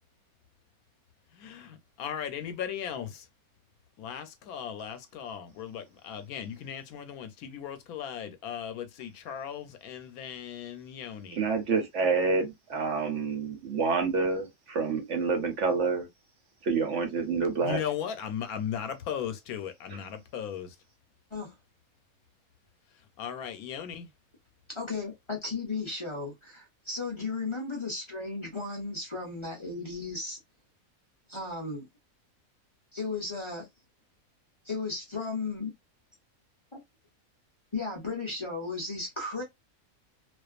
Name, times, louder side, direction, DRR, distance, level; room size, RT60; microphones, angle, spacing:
voice 1, 1.3-3.3 4.0-11.4 17.6-20.7 23.2-24.1, left 8 dB, 85° left, 1.1 m, -37 dB
voice 2, 11.3-16.1 16.6-17.8, right 4 dB, 60° right, 1.0 m, -28 dB
voice 3, 24.7-30.4 31.3-31.9 32.9-33.7 34.6-35.7 36.7-36.8 37.7-39.4, left 3 dB, 35° left, 0.5 m, -35 dB
2.5 x 2.3 x 2.3 m
omnidirectional pair, 1.5 m